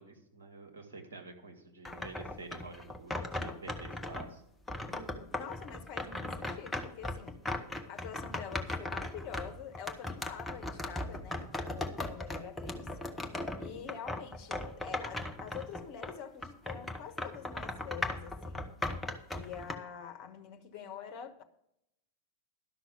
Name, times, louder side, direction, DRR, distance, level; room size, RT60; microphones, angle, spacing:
voice 1, 0.0-4.4 13.7-14.1, right 3 dB, 65° right, 2.1 m, -49 dB
sound 1, 1.9-4.3 4.7-16.2 16.4-19.8, left 2 dB, 10° left, 1.0 m, -38 dB
voice 2, 3.3-3.8 4.8-7.4 7.8-12.9 13.6-18.7 19.3-21.4, left 7 dB, 40° left, 1.3 m, -46 dB
12.0 x 5.9 x 7.1 m
figure-of-eight pair, 90°, 0 cm